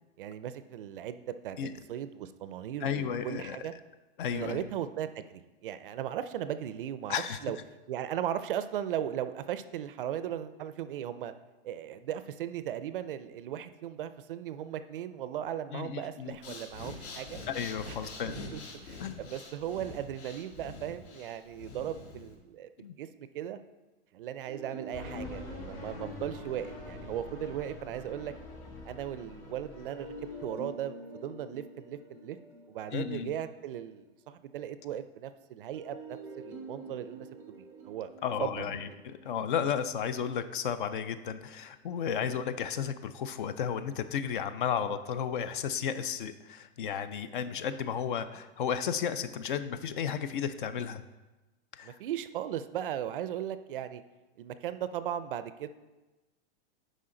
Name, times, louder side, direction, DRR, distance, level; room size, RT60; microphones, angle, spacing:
voice 1, 0.2-1.6 1.9-3.7 4.3-7.6 7.9-11.3 11.6-17.4 17.9-18.1 18.5-22.7 23.0-23.1 23.3-23.6 24.1-28.3 28.8-30.1 30.4-32.4 32.7-38.1 38.4-38.7 42.2-42.4 51.8-54.0 54.4-55.7, right 10 dB, 55° right, 12 dB, 0.4 m, -37 dB
voice 2, 2.8-3.6 4.2-4.7 7.1-7.4 15.7-16.4 17.5-18.5 19.0-19.3 22.8-22.9 32.9-33.3 38.2-51.0 51.7-52.0, left 8 dB, 50° left, 12 dB, 0.5 m, -33 dB
Breathing, 16.3-22.4, left 3 dB, 75° left, 1.9 m, -45 dB
sound 1, 24.4-28.3 29.9-34.3 35.7-40.9, right 2 dB, 5° right, 0.6 m, -48 dB
sound 2, 24.9-30.5, left 2 dB, 35° left, 2.3 m, -44 dB
9.8 x 5.2 x 3.8 m, 1.1 s
supercardioid pair, 175°, 33 cm